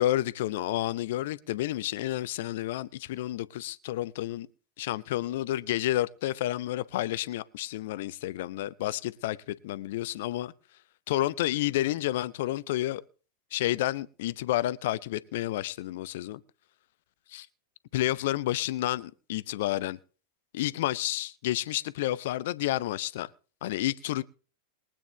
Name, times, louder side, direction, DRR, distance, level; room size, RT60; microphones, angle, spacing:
voice 1, 0.0-4.5 4.8-10.5 11.1-13.0 13.5-16.4 17.3-17.5 17.9-20.0 20.5-23.3 23.6-24.2, left 14 dB, 55° left, 0.7 m, -30 dB
22.0 x 8.8 x 3.4 m
figure-of-eight pair, 90°, 0 cm